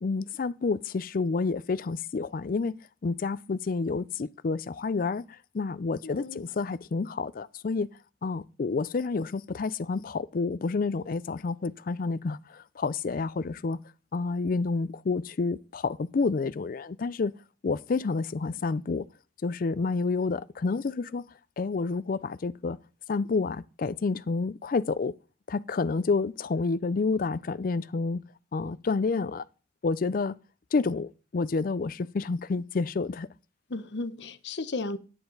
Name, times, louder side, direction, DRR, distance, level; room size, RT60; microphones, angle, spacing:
voice 1, 0.0-2.7 3.0-7.9 8.2-13.8 14.1-17.3 17.6-19.1 19.4-22.8 23.1-25.1 25.5-28.2 28.5-29.4 29.8-30.4 30.7-33.3, left 4 dB, 55° left, 0.4 m, -29 dB
voice 2, 6.0-6.5 33.7-35.0, left 2 dB, 90° left, 0.9 m, -34 dB
10.5 x 9.0 x 3.9 m
head